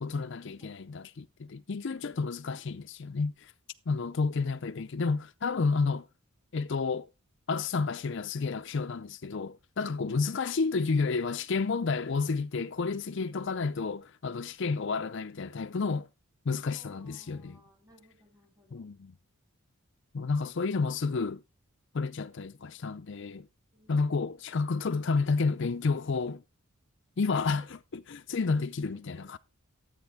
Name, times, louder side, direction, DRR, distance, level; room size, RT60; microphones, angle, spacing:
voice 1, 0.0-3.5 3.9-6.1 6.5-7.1 7.5-16.1 16.5-17.6 18.7-19.1 20.1-21.4 21.9-23.5 23.9-26.4 27.2-27.6 28.1-29.4, left 4 dB, 55° left, 0.5 m, -30 dB
voice 2, 16.6-18.9 23.7-24.4 27.4-27.7 29.1-29.4, left 1 dB, 15° right, 3.2 m, -60 dB
13.0 x 8.8 x 3.5 m
head